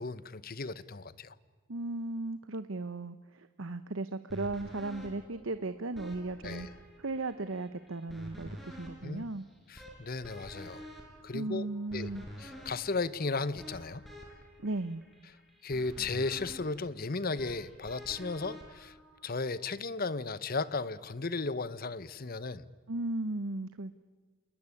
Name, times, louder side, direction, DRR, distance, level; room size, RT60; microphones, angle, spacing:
voice 1, 0.0-1.3 6.4-6.7 9.0-9.2 9.7-10.8 11.2-11.7 11.9-12.1 12.4-14.0 15.6-18.9 19.2-22.6, left 3 dB, 40° left, 17 dB, 0.8 m, -35 dB
voice 2, 1.7-6.7 7.0-9.5 11.3-12.2 14.6-15.0 22.9-24.1, right 2 dB, 65° right, 12 dB, 0.9 m, -36 dB
sound 1, 4.3-19.5, equal, ahead, 5.2 m, -49 dB
27.5 x 21.0 x 9.8 m, 1.4 s
head